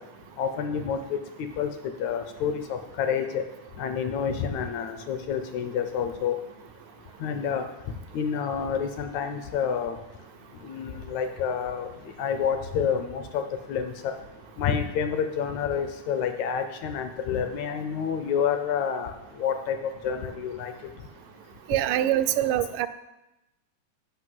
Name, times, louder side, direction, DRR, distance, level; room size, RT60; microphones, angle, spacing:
voice 1, 0.4-1.7 2.0-3.4 3.8-6.4 7.2-7.6 8.1-10.0 10.6-11.9 12.2-14.2 14.6-19.1 19.4-20.7, left 7 dB, 75° left, 8 dB, 1.8 m, -28 dB
voice 2, 21.7-22.9, right 12 dB, 90° right, 10 dB, 2.1 m, -24 dB
8.1 x 5.8 x 7.6 m, 0.95 s
omnidirectional pair, 3.6 m